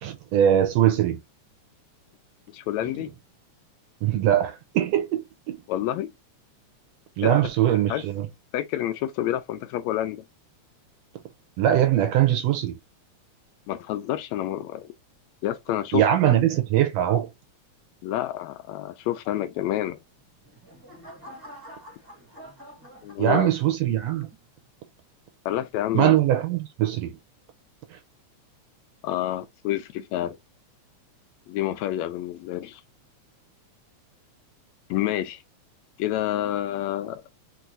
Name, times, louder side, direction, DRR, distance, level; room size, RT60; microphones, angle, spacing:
voice 1, 0.0-1.2 4.0-5.6 7.2-8.3 11.6-12.8 15.9-17.3 23.2-24.3 25.9-27.2 27.9-28.0, right 11 dB, 75° right, 1.6 m, -22 dB
voice 2, 2.5-3.1 5.7-6.1 7.2-7.3 7.9-8.0 8.5-10.2 13.7-14.9 15.4-16.1 18.0-20.0 23.0-23.5 25.4-26.2 29.0-30.4 31.5-32.8 34.9-35.4 36.0-37.2, left 13 dB, 80° left, 1.8 m, -28 dB
sound 1, 20.2-23.8 24.3-24.6, equal, 15° right, 0.9 m, -47 dB
4.6 x 4.4 x 2.6 m
omnidirectional pair, 3.4 m